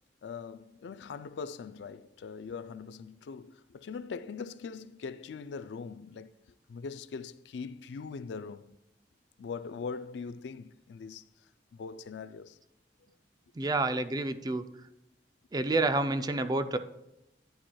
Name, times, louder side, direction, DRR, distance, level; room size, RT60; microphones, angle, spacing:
voice 1, 0.2-6.4 6.7-8.8 9.4-11.3 11.7-12.6, left 5 dB, 75° left, 0.4 m, -41 dB
voice 2, 13.6-14.7 15.5-16.8, right 2 dB, 25° right, 0.4 m, -29 dB
10.0 x 9.8 x 2.3 m
head